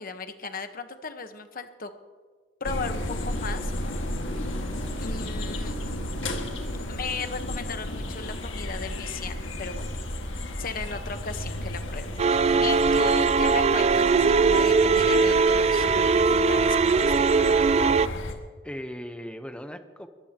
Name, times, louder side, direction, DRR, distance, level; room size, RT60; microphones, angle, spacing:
voice 1, 0.0-1.9 2.6-3.7 5.0-5.7 6.9-9.9 10.6-17.8, left 4 dB, 50° left, 8 dB, 1.2 m, -36 dB
sound 1, 2.6-18.3, left 1 dB, 85° left, 1.9 m, -33 dB
voice 2, 6.1-6.6 12.5-13.1 18.6-20.1, equal, 5° left, 8 dB, 0.9 m, -40 dB
sound 2, 12.2-18.1, right 4 dB, 35° right, 0.3 m, -20 dB
22.5 x 15.0 x 3.0 m, 1.5 s
head